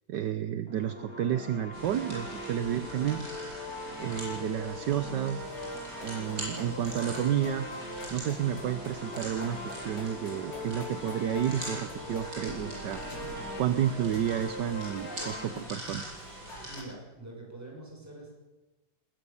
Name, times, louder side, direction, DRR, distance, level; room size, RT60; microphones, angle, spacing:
voice 1, 0.1-3.2 4.0-5.5 6.0-7.7 8.1-13.0 13.6-16.0, right 10 dB, 65° right, 12 dB, 1.4 m, -31 dB
feel good, 0.7-15.4, left 1 dB, 50° left, 3.6 m, -41 dB
sound 1, 1.7-16.8, right 1 dB, 50° right, 8.7 m, -43 dB
sound 2, 5.4-16.8, left 2 dB, 65° left, 4.2 m, -50 dB
voice 2, 16.6-18.3, right 2 dB, 10° right, -2 dB, 6.7 m, -45 dB
20.5 x 19.5 x 7.2 m, 1.1 s
omnidirectional pair, 2.1 m